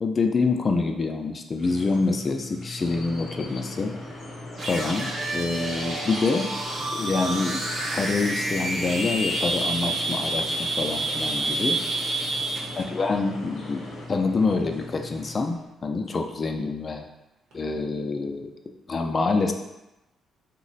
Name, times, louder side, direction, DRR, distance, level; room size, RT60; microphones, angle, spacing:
voice 1, 0.0-3.9 4.7-6.5 6.9-7.6 7.9-11.8 12.8-17.1 17.5-18.5 18.9-19.5, left 3 dB, 35° left, 4 dB, 0.4 m, -26 dB
sound 1, 1.5-15.8 17.5-17.6, left 2 dB, 90° right, 1.0 m, -42 dB
sound 2, 2.8-14.1, left 1 dB, 55° left, 0.8 m, -41 dB
sound 3, 4.6-12.8, right 2 dB, 50° right, 0.8 m, -29 dB
2.9 x 2.1 x 3.9 m, 0.95 s
cardioid pair, 90°, 0 cm